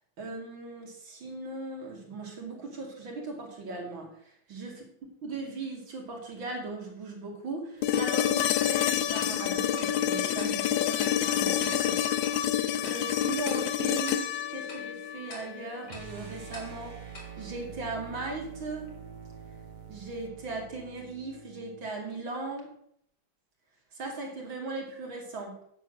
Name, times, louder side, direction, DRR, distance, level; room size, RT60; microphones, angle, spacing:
voice 1, 0.2-4.7 5.2-12.0 12.8-18.9 19.9-22.7 23.9-25.6, right 3 dB, 70° right, 0 dB, 3.3 m, -38 dB
sound 1, 7.8-15.9 18.0-18.1, left 10 dB, 75° left, 1.2 m, -28 dB
Tick-tock, 7.9-18.4, left 2 dB, 55° left, 2.7 m, -51 dB
sound 2, 15.8-21.9, right 6 dB, 35° right, 0.8 m, -45 dB
9.8 x 7.2 x 6.2 m, 0.68 s
omnidirectional pair, 2.3 m